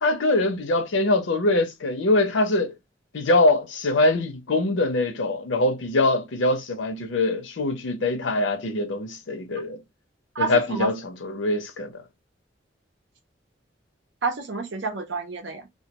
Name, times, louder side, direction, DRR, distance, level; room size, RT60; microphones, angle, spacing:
voice 1, 0.0-2.7 3.1-9.8 10.4-11.9, left 2 dB, 85° left, 0.6 m, -23 dB
voice 2, 10.3-10.9 14.2-15.7, right 3 dB, 70° right, 0.7 m, -29 dB
2.3 x 2.2 x 2.8 m
head